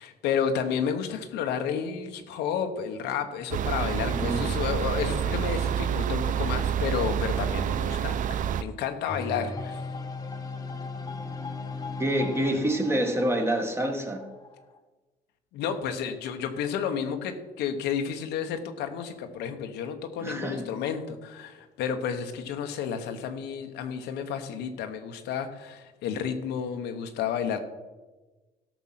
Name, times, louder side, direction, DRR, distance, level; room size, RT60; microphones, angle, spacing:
voice 1, 0.0-9.8 15.5-27.6, left 7 dB, 85° left, 6 dB, 1.2 m, -31 dB
sound 1, 3.5-8.6, right 8 dB, 50° right, 0.5 m, -28 dB
voice 2, 4.1-4.5 12.0-14.3 20.2-20.7, right 1 dB, 15° right, 4 dB, 1.6 m, -27 dB
sound 2, 9.1-14.8, left 4 dB, 20° left, 1.1 m, -37 dB
13.5 x 6.1 x 5.8 m, 1.2 s
cardioid pair, 110°, 17 cm